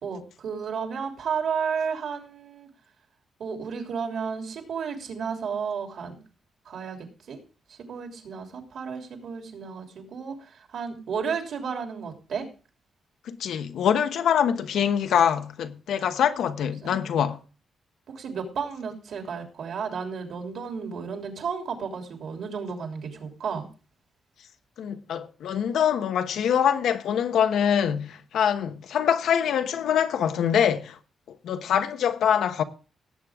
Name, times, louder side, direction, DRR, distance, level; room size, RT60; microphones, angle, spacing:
voice 1, 0.0-2.7 3.4-6.2 6.6-7.4 7.7-12.5 16.8-17.0 18.1-23.7, right 6 dB, 60° right, 3.2 m, -33 dB
voice 2, 13.3-17.4 24.8-31.0 31.4-32.6, left 8 dB, 85° left, 1.1 m, -24 dB
18.0 x 8.5 x 3.6 m
wide cardioid pair, 170°, 0 cm